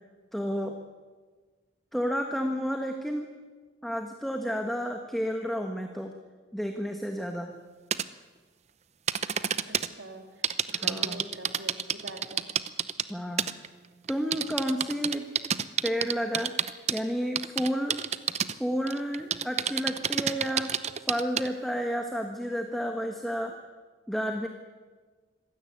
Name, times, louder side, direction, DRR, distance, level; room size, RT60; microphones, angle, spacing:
voice 1, 0.3-0.8 1.9-3.3 3.8-6.2 6.5-7.5 10.7-11.2 13.1-13.5 14.1-15.3 15.8-16.5 16.9-18.0 18.5-20.7 21.0-23.5 24.1-24.5, equal, ahead, 3 dB, 1.4 m, -31 dB
sound 1, 7.9-8.0 9.1-9.9 10.4-13.1 13.4-13.7 14.1-17.0 17.4-18.5 18.9-21.5, right 8 dB, 35° right, 0.7 m, -28 dB
voice 2, 9.7-12.6, right 1 dB, 80° right, 5 dB, 3.2 m, -44 dB
25.5 x 16.5 x 9.5 m, 1.4 s
head